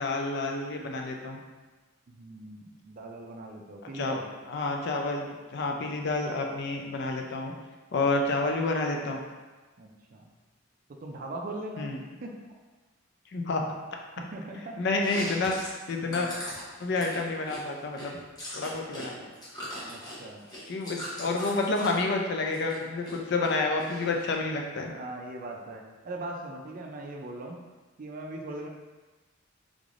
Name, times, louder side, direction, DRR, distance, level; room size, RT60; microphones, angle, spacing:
voice 1, 0.0-1.4 3.9-4.2 4.5-5.3 5.5-7.5 7.9-9.2 11.8-12.0 13.3-13.7 14.8-15.6 15.9-16.3 16.8-18.2 18.5-19.3 20.7-24.9, left 3 dB, 55° left, 2 dB, 0.4 m, -29 dB
voice 2, 2.1-4.2 9.8-10.3 11.0-11.9 12.2-12.3 14.2-14.7 16.1-16.4 18.9-19.1 19.9-20.5 24.9-27.6 28.0-28.7, right 2 dB, 45° right, 1 dB, 0.4 m, -40 dB
Chewing mastication, 14.9-19.1 19.3-22.0 22.4-23.2 23.4-24.3, equal, 20° left, 0.8 m, -40 dB
3.6 x 3.3 x 2.5 m, 1.2 s
head